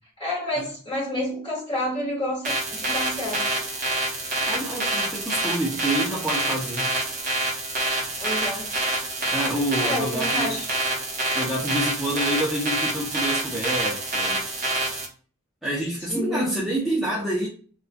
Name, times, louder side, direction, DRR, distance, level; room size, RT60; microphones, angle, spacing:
voice 1, 0.2-3.5 8.2-8.7 9.8-10.7 16.1-16.7, left 1 dB, 25° left, 1.2 m, -29 dB
sound 1, 2.4-15.1, right 2 dB, 40° right, 0.7 m, -27 dB
voice 2, 4.4-6.9 9.3-10.6 11.3-14.4 15.6-17.5, right 1 dB, ahead, 0.4 m, -28 dB
2.4 x 2.3 x 2.5 m
head